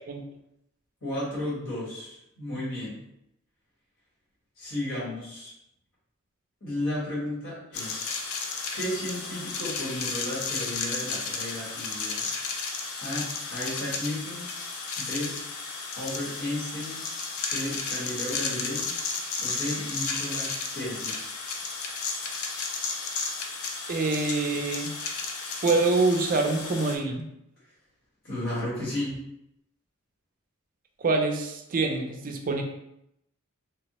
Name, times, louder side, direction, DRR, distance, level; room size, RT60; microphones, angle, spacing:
voice 1, 1.0-3.0 4.6-5.5 6.6-8.2 8.7-12.3 13.0-14.5 15.0-15.4 15.9-17.0 17.3-18.9 19.4-21.2 28.2-29.2, left 1 dB, 60° left, -7 dB, 1.3 m, -34 dB
sound 1, 7.7-27.0, left 4 dB, 80° left, 0.4 m, -33 dB
voice 2, 23.9-24.9 25.6-27.2 31.0-32.6, right 3 dB, 40° right, 3 dB, 0.4 m, -25 dB
3.3 x 2.0 x 2.9 m, 0.82 s
head